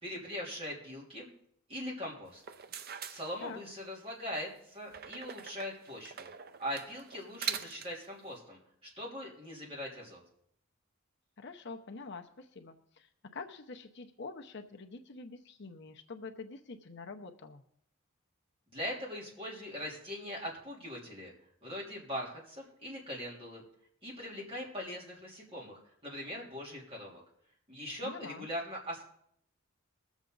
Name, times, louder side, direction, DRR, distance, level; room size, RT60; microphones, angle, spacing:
voice 1, 0.0-1.3 1.7-2.4 3.1-6.3 6.6-10.2 18.7-21.3 21.6-23.6 24.0-27.2 27.7-29.0, equal, 25° right, -4 dB, 3.4 m, -41 dB
sound 1, 2.3-3.9 4.9-8.1, right 8 dB, 45° right, 0.5 m, -42 dB
voice 2, 11.4-17.6 28.0-28.5, left 4 dB, 55° left, 5 dB, 0.8 m, -46 dB
21.0 x 7.2 x 3.9 m, 0.69 s
head